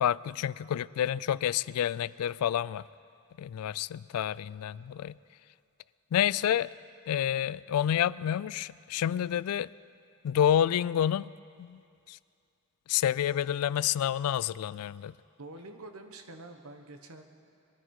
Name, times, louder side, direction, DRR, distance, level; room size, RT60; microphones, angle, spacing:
voice 1, 0.0-2.8 3.4-5.2 6.1-6.7 7.1-9.7 10.2-11.3 11.6-11.8 12.1-12.2 12.9-15.1, left 10 dB, 90° left, 19 dB, 0.3 m, -28 dB
voice 2, 15.4-17.2, right 2 dB, 75° right, 6 dB, 1.1 m, -46 dB
22.0 x 13.5 x 4.8 m, 2.4 s
head